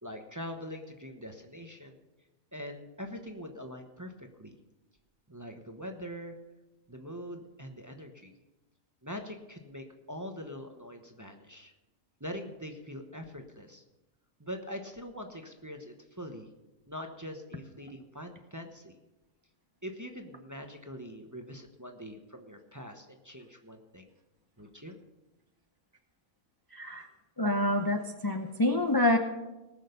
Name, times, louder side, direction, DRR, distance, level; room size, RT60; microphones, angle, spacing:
voice 1, 0.0-2.0 2.5-4.5 5.3-6.4 6.9-8.3 9.0-11.7 12.2-13.8 14.4-16.5 16.9-18.9 19.8-24.1 24.6-25.0, equal, 15° right, 4 dB, 0.9 m, -43 dB
voice 2, 26.7-27.1 27.4-29.2, left 1 dB, 20° left, 4 dB, 0.7 m, -27 dB
19.0 x 6.4 x 6.7 m, 1.0 s
omnidirectional pair, 1.4 m